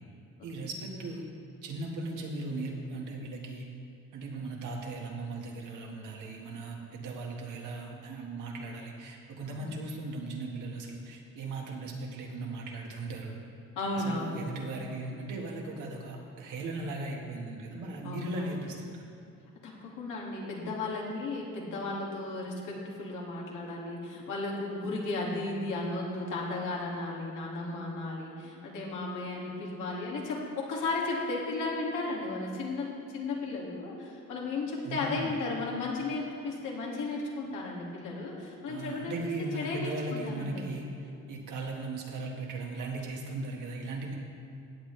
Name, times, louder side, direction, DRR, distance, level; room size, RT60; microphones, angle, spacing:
voice 1, 0.4-1.2 1.6-3.7 4.1-13.4 13.9-19.1 34.8-35.3 38.7-44.2, right 2 dB, 85° right, 0 dB, 1.8 m, -38 dB
voice 2, 9.5-9.8 13.8-14.6 18.0-18.6 19.6-40.6, left 2 dB, 90° left, -3 dB, 2.3 m, -35 dB
16.0 x 8.5 x 3.3 m, 2.7 s
cardioid pair, 90°, 30 cm